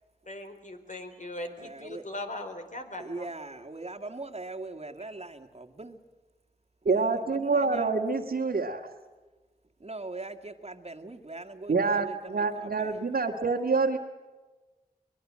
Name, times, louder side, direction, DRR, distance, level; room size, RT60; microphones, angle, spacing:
voice 1, 0.3-3.3, left 1 dB, 50° left, 6 dB, 4.0 m, -39 dB
voice 2, 1.6-2.1 3.0-6.0 6.9-7.9 9.8-13.0, right 2 dB, 40° right, 6 dB, 2.2 m, -41 dB
voice 3, 6.9-8.9 11.7-14.0, right 4 dB, 75° right, -2 dB, 2.0 m, -26 dB
23.5 x 22.0 x 7.6 m, 1.2 s
cardioid pair, 50°, 16 cm